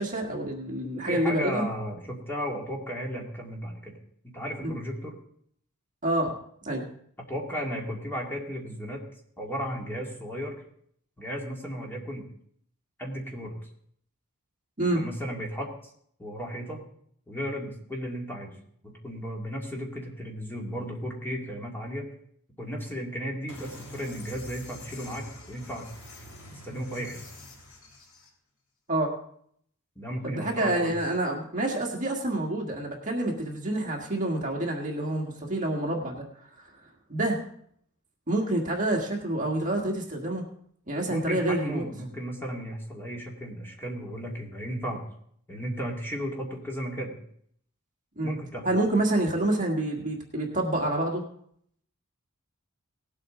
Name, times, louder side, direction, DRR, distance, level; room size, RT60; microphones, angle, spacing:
voice 1, 0.0-1.7 4.6-4.8 6.0-6.3 6.6-6.9 14.8-15.0 28.9-29.1 30.2-36.2 36.6-36.7 37.1-37.4 38.3-40.4 40.9-41.8 48.2-48.4 48.6-51.2, right 1 dB, 35° right, 0 dB, 1.7 m, -27 dB
voice 2, 0.8-4.0 4.2-5.2 7.2-9.1 9.4-10.6 11.2-12.2 13.0-13.6 14.8-15.9 16.2-16.8 17.3-18.5 18.8-22.1 22.6-25.9 26.5-27.2 30.0-30.9 41.1-45.0 45.5-47.2 48.2-48.7, equal, 10° left, -1 dB, 2.4 m, -35 dB
sound 1, 23.5-28.3, left 1 dB, 75° left, 3.9 m, -46 dB
18.5 x 8.2 x 3.8 m, 0.64 s
head